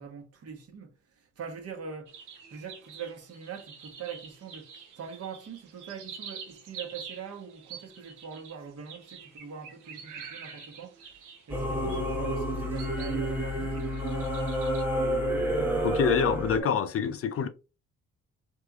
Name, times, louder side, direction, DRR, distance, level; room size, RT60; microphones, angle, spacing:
voice 1, 0.0-2.2 2.5-14.8 15.0-15.8 16.6-16.7, right 6 dB, 55° right, 1.1 m, -43 dB
sound 1, 2.1-13.2 13.6-14.8, right 6 dB, 85° right, 0.8 m, -47 dB
Singing / Musical instrument, 11.5-16.6, equal, 5° right, 0.9 m, -29 dB
voice 2, 15.8-17.5, left 6 dB, 50° left, 0.5 m, -26 dB
3.4 x 3.1 x 2.3 m
cardioid pair, 90°, 30 cm